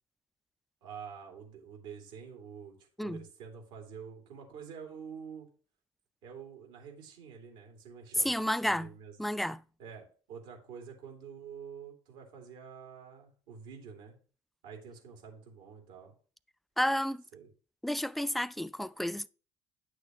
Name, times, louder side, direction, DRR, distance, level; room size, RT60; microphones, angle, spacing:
voice 1, 0.8-5.5 6.2-9.1 9.8-14.2 14.6-16.1 17.3-17.5, right 6 dB, 80° right, 2.8 m, -47 dB
voice 2, 8.2-8.9 9.2-9.6 16.8-17.2 17.8-19.3, equal, ahead, 0.4 m, -31 dB
9.6 x 6.4 x 3.1 m
hypercardioid pair, 65°, 15 cm